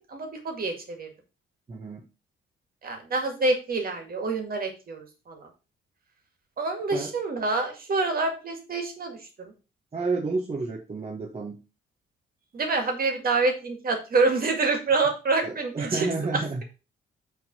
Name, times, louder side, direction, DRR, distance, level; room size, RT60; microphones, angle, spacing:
voice 1, 0.1-1.1 2.8-5.5 6.6-9.5 12.5-16.6, right 3 dB, 45° right, 4 dB, 2.1 m, -27 dB
voice 2, 1.7-2.0 6.9-7.1 9.9-11.6 15.4-16.6, right 3 dB, 30° right, 0 dB, 1.1 m, -30 dB
5.9 x 3.8 x 5.3 m, 0.31 s
cardioid pair, 90°, 20 cm